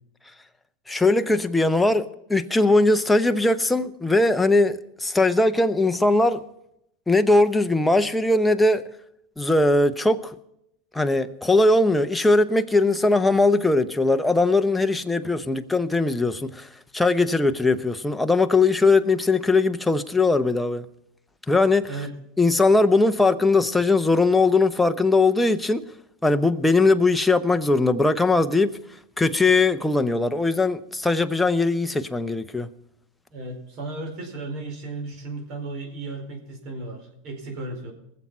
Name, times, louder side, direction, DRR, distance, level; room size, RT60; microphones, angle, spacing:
voice 1, 0.9-2.0 2.3-6.4 7.1-8.8 9.4-10.3 10.9-20.8 21.5-21.8 22.4-25.8 26.2-28.7 29.2-32.7, left 2 dB, 5° left, 0.8 m, -20 dB
voice 2, 33.3-37.9, right 2 dB, 50° right, 4.6 m, -35 dB
20.5 x 7.4 x 5.6 m
supercardioid pair, 110°, 0 cm